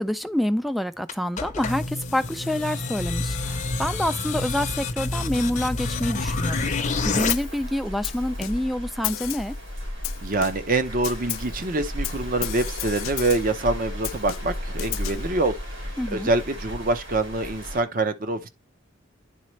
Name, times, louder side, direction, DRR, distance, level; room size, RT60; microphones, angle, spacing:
voice 1, 0.0-9.6 16.0-16.3, equal, ahead, 0.3 m, -27 dB
sound 1, 1.1-7.3, left 3 dB, 40° left, 0.7 m, -28 dB
sound 2, 6.1-17.8, left 1 dB, 80° right, 4.6 m, -35 dB
Snare drum, 7.3-7.6 8.0-8.7 9.0-9.6 10.0-10.7 11.0-11.6 12.0-13.6 14.0-15.3, left 17 dB, 85° left, 0.3 m, -33 dB
voice 2, 10.2-18.5, right 2 dB, 45° right, 0.8 m, -25 dB
10.0 x 4.2 x 3.1 m
head